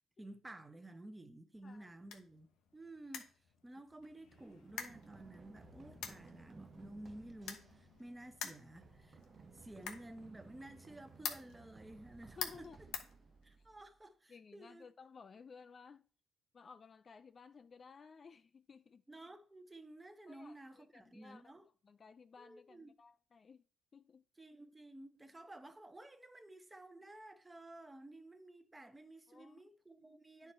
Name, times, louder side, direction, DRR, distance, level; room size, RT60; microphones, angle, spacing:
voice 1, 0.2-2.5 2.7-3.3 3.6-9.2 9.5-12.7 13.4-14.9 19.1-21.7 22.4-22.9 24.4-30.5, right 1 dB, 15° right, 1.0 m, -53 dB
sound 1, 1.5-13.8, left 8 dB, 90° left, 1.0 m, -50 dB
Run, 4.3-14.1, right 5 dB, 40° right, 0.4 m, -60 dB
voice 2, 12.4-12.8 13.6-13.7 14.3-16.1 16.5-19.0 20.3-21.4 21.8-23.6 23.9-24.2 29.3-29.6 30.4-30.5, left 5 dB, 40° left, 0.5 m, -57 dB
9.6 x 4.7 x 4.5 m
cardioid pair, 90°, 0 cm